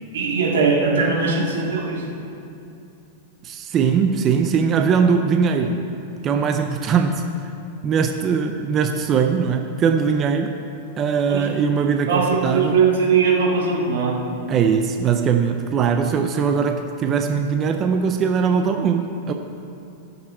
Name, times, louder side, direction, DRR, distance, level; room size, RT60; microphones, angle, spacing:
voice 1, 0.1-2.2 11.3-11.5 12.1-14.2, right 5 dB, 90° right, -2 dB, 2.2 m, -20 dB
voice 2, 3.4-5.8 6.2-7.2 7.8-10.5 11.0-12.8 14.5-19.3, right 6 dB, 25° right, 5 dB, 0.5 m, -20 dB
15.5 x 6.6 x 4.3 m, 2.6 s
supercardioid pair, 145°, 0 cm